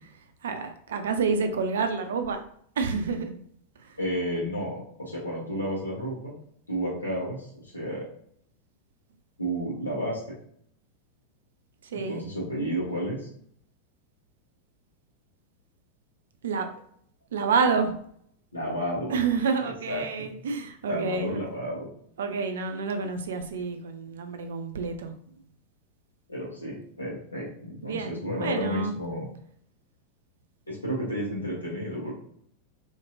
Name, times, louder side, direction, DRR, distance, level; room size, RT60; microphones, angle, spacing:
voice 1, 0.4-2.4 2.8-3.3 11.9-12.2 16.4-16.7 17.3-17.9 19.1-21.4 22.2-25.1 27.8-28.9, right 5 dB, 60° right, 7 dB, 0.4 m, -28 dB
voice 2, 4.0-6.4 6.7-8.1 9.4-10.3 11.9-13.3 18.5-19.1 19.6-20.4 20.9-21.9 26.3-29.3 30.7-32.1, equal, 80° left, -4 dB, 1.2 m, -32 dB
2.8 x 2.8 x 2.6 m, 0.64 s
figure-of-eight pair, 90°, 0 cm